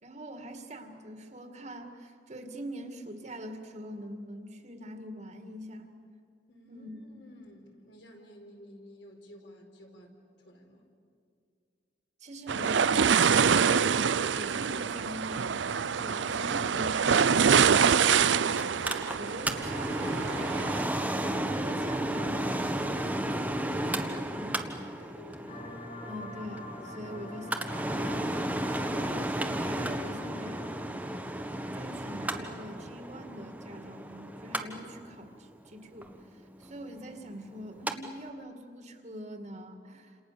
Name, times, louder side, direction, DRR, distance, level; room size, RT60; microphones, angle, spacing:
voice 1, 0.0-5.9 6.7-7.2 12.2-14.0 14.3-18.8 19.2-20.4 21.2-24.6 26.0-31.2 31.7-36.1 36.6-40.2, equal, 40° right, 5 dB, 2.3 m, -43 dB
voice 2, 6.5-10.1 10.4-10.9 24.7-25.6, left 1 dB, 65° left, 2 dB, 4.4 m, -52 dB
sound 1, 12.5-20.8, right 6 dB, 75° right, 0.6 m, -25 dB
Mechanical fan, 18.6-37.9 38.3-38.4, right 1 dB, 10° right, 1.3 m, -34 dB
sound 2, 25.5-30.9, left 2 dB, 50° left, 3.0 m, -45 dB
29.5 x 27.5 x 7.0 m, 2.3 s
head